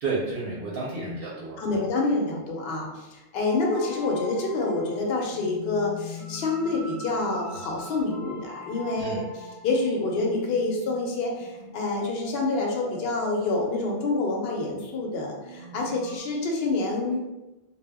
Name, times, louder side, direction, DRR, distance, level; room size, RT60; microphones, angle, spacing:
voice 1, 0.0-1.9 9.0-9.2, right 3 dB, 65° right, -4 dB, 0.7 m, -31 dB
voice 2, 1.6-9.2 9.6-17.2, left 3 dB, 65° left, -1 dB, 0.7 m, -27 dB
sound 1, 3.4-16.2, left 1 dB, 25° right, 0.7 m, -42 dB
2.0 x 2.0 x 3.4 m, 1.0 s
omnidirectional pair, 1.1 m